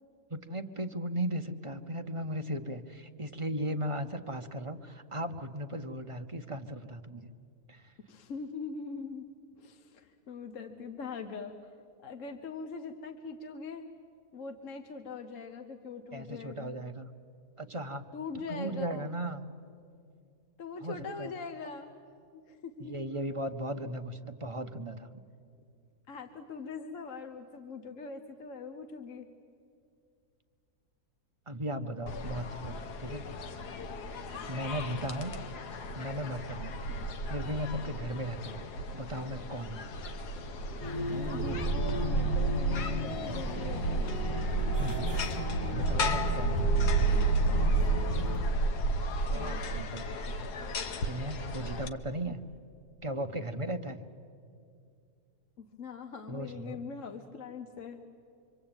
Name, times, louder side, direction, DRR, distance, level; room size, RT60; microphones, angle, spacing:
voice 1, 0.3-7.3 7.7-7.9 16.1-17.1 17.6-18.1 18.5-19.5 20.8-21.3 22.8-25.1 31.5-33.3 34.5-35.3 36.0-36.7 37.2-38.6 38.9-39.9 44.8-45.2 45.7-46.7 49.3-50.0 51.0-52.4 53.0-54.0 56.3-56.8, right 1 dB, 30° right, 6 dB, 0.6 m, -37 dB
voice 2, 8.1-9.3 9.6-11.7 12.0-13.9 14.3-16.8 18.1-19.1 20.6-22.0 22.3-23.3 26.1-29.3 36.9-37.1 41.1-44.2 49.3-49.6 55.6-58.0, left 4 dB, 55° left, 7 dB, 1.3 m, -42 dB
sound 1, 32.1-51.9, right 2 dB, 80° left, 1.6 m, -32 dB
sound 2, 40.8-48.4, equal, 20° left, 3.2 m, -36 dB
25.5 x 25.0 x 8.9 m, 2.4 s
omnidirectional pair, 1.7 m